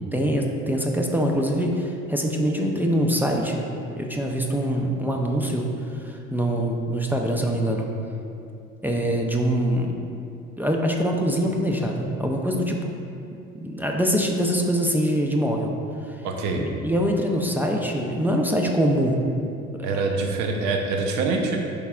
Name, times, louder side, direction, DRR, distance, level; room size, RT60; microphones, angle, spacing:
voice 1, 0.1-3.7 4.0-5.6 6.0-7.9 8.8-9.9 10.6-13.0 13.5-15.7 16.1-16.2 16.5-19.2, equal, 5° right, 1 dB, 0.7 m, -24 dB
voice 2, 16.2-16.6 19.8-21.6, right 3 dB, 75° right, 2 dB, 0.9 m, -25 dB
10.5 x 3.6 x 2.5 m, 2.5 s
supercardioid pair, 75°, 29 cm